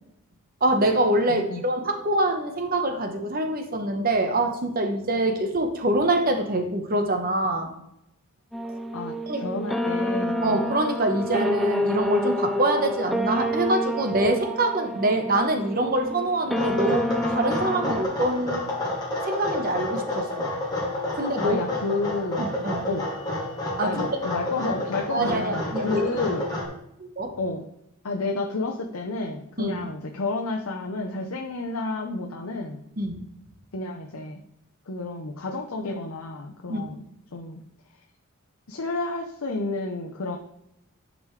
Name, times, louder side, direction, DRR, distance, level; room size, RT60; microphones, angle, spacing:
voice 1, 0.6-7.7 9.3-9.4 10.4-18.6 19.3-20.5 21.1-21.6 22.4-22.9 23.8-24.0 25.1-26.0 27.2-27.4 29.6-29.8 33.0-33.2 36.7-36.9, right 1 dB, 40° right, 5 dB, 1.0 m, -25 dB
voice 2, 1.3-1.6 8.9-10.7 21.4-22.4 22.9-23.1 23.8-26.4 27.4-27.6 28.0-32.8 33.7-34.4 34.9-37.0 37.3-37.6 38.7-40.4, left 3 dB, 80° left, 1 dB, 0.7 m, -30 dB
sound 1, 8.5-18.0, left 1 dB, ahead, 0.4 m, -28 dB
sound 2, 16.6-26.7, left 1 dB, 20° left, 2.3 m, -30 dB
10.5 x 5.2 x 3.2 m, 0.81 s
head